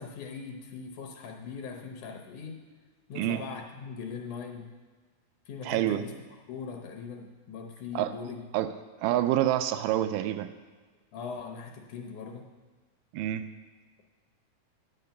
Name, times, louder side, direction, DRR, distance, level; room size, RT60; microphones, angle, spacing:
voice 1, 0.0-2.6 3.1-4.7 5.5-6.1 6.5-8.4 11.1-12.5, left 5 dB, 70° left, 2 dB, 2.1 m, -40 dB
voice 2, 5.6-6.0 8.0-8.1 8.5-8.7 9.0-10.5 13.1-13.4, right 13 dB, 85° right, 9 dB, 2.1 m, -27 dB
9.5 x 5.8 x 6.7 m, 1.4 s
omnidirectional pair, 3.9 m